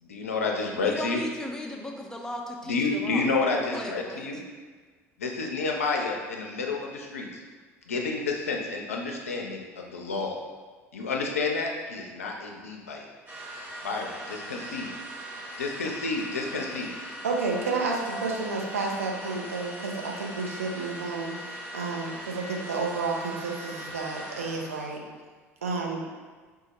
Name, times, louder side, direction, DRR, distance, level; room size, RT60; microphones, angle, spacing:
voice 1, 0.0-1.2 2.7-4.4 5.2-7.3 7.9-10.4 10.9-13.1 13.8-14.0 14.5-14.9 15.6-16.9, left 3 dB, 75° left, 1 dB, 0.4 m, -29 dB
voice 2, 0.8-3.3 3.7-4.3, left 1 dB, 10° left, 1 dB, 0.4 m, -37 dB
sound 1, 13.3-24.9, equal, 25° right, 0.9 m, -40 dB
voice 3, 17.2-25.0 25.6-26.0, right 4 dB, 75° right, 0 dB, 0.4 m, -31 dB
3.5 x 2.0 x 2.9 m, 1.5 s
figure-of-eight pair, 65°, 8 cm